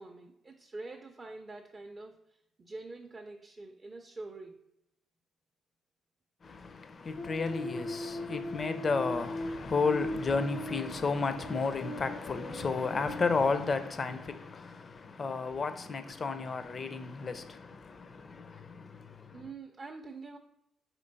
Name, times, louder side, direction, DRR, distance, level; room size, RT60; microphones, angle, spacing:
voice 1, 0.0-4.7 19.3-20.4, right 3 dB, 30° right, 0.5 m, -46 dB
voice 2, 6.4-19.4, left 4 dB, 40° left, 0.4 m, -33 dB
sound 1, 7.2-13.3, left 1 dB, 85° left, 0.8 m, -39 dB
4.4 x 3.0 x 3.9 m
cardioid pair, 90°, 0 cm